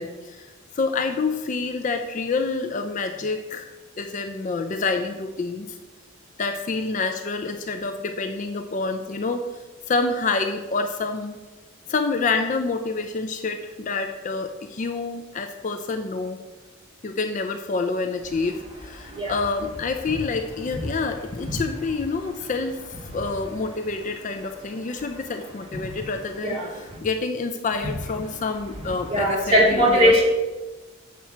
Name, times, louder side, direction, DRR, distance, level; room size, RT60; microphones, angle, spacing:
voice 1, 0.0-3.7 4.0-5.8 6.4-9.5 9.9-11.4 11.9-16.4 17.0-22.8 23.1-30.1, left 3 dB, 35° left, 6 dB, 0.4 m, -27 dB
voice 2, 29.1-30.2, equal, 25° right, -4 dB, 1.9 m, -19 dB
7.2 x 5.8 x 4.3 m, 1.2 s
head